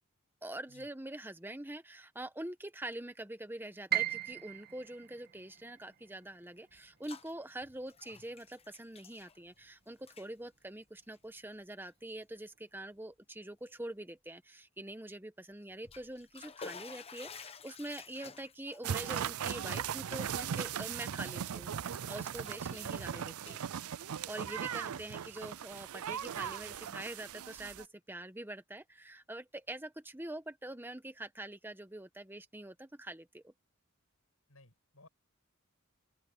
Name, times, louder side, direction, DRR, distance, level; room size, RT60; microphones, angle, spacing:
voice 1, 0.4-23.6 24.3-33.5, right 1 dB, 10° right, 1.3 m, -45 dB
Piano, 3.9-9.8 10.2-11.3 11.7-11.8 12.5-12.9, right 13 dB, 45° right, 2.1 m, -40 dB
Bathtub (filling or washing), 6.7-7.3 7.6-9.7 10.0-10.3 11.0-11.2 11.8-11.9 12.4-12.5 15.6-21.8 22.2-22.9 23.3-24.6, left 5 dB, 30° left, 1.0 m, -52 dB
sound 1, 18.8-27.8, right 8 dB, 85° right, 0.5 m, -38 dB
voice 2, 24.6-25.0 34.5-35.1, left 3 dB, 75° left, 7.9 m, -58 dB
open air
head